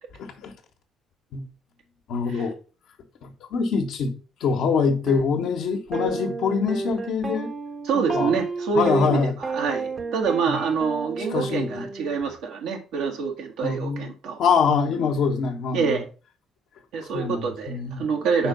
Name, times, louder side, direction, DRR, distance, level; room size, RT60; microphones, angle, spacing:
voice 1, 0.2-0.5 1.3-1.4 2.1-2.5 3.2-4.1 4.4-7.5 7.9-8.3 8.7-9.3 10.5-10.6 11.3-11.9 13.6-14.0 14.4-16.0 17.1-18.0 18.4-18.5, left 5 dB, 65° left, 1.3 m, -24 dB
sound 1, 5.1-5.2 5.9-12.2, right 4 dB, 40° right, 1.1 m, -32 dB
voice 2, 7.8-14.4 15.7-16.0 16.9-18.5, right 5 dB, 70° right, 1.6 m, -26 dB
5.0 x 4.4 x 5.3 m
hypercardioid pair, 55°, 0 cm